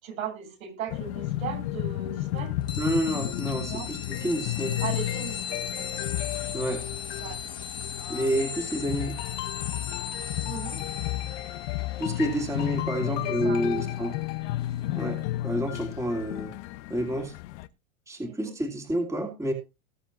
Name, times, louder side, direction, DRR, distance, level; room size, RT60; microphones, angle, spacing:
voice 1, 0.0-2.5 3.7-3.9 4.8-6.0 7.2-7.4 10.4-10.9 13.0-14.2 18.2-18.6, right 8 dB, 80° right, 3 dB, 7.2 m, -38 dB
sound 1, 0.9-17.7, left 15 dB, 55° left, 1.1 m, -32 dB
sound 2, 2.7-14.8, left 6 dB, 10° left, 0.5 m, -39 dB
voice 2, 2.8-4.8 6.5-6.9 8.1-9.1 12.0-14.1 14.9-16.5 16.9-17.3 18.1-19.5, right 1 dB, 5° right, 3 dB, 2.6 m, -29 dB
19.5 x 7.4 x 2.8 m, 0.27 s
supercardioid pair, 140°, 41 cm